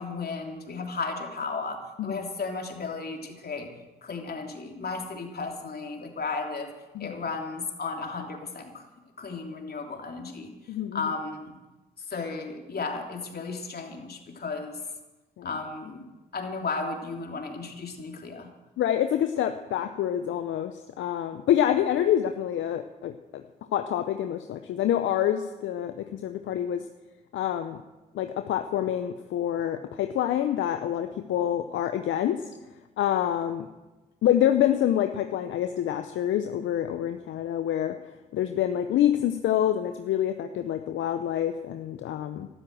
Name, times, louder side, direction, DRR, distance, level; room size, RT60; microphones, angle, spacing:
voice 1, 0.0-3.7 4.0-6.7 7.0-8.8 9.2-10.5 10.9-11.6 12.0-14.8 15.4-16.0 16.3-18.5, left 4 dB, 50° left, 2 dB, 3.2 m, -34 dB
voice 2, 10.7-11.0 15.4-15.5 18.8-23.4 23.7-26.8 27.3-27.8 28.1-32.4 33.0-33.7 34.2-37.9 38.3-42.5, left 11 dB, 75° left, 8 dB, 0.8 m, -27 dB
13.5 x 12.5 x 7.7 m, 1.1 s
hypercardioid pair, 45°, 20 cm